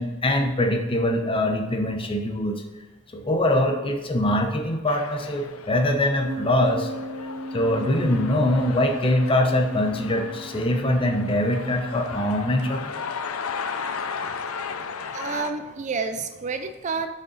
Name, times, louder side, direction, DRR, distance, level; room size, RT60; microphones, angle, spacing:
voice 1, 0.0-2.6 3.1-6.9 7.5-13.0, left 1 dB, 25° left, 4 dB, 0.8 m, -23 dB
sound 1, 4.9-15.5, left 5 dB, 75° left, 0.6 m, -35 dB
sound 2, 6.3-13.3, equal, 65° right, 1.5 m, -38 dB
voice 2, 14.7-17.1, right 4 dB, 35° right, 8 dB, 0.4 m, -30 dB
6.7 x 6.5 x 4.0 m, 1.2 s
head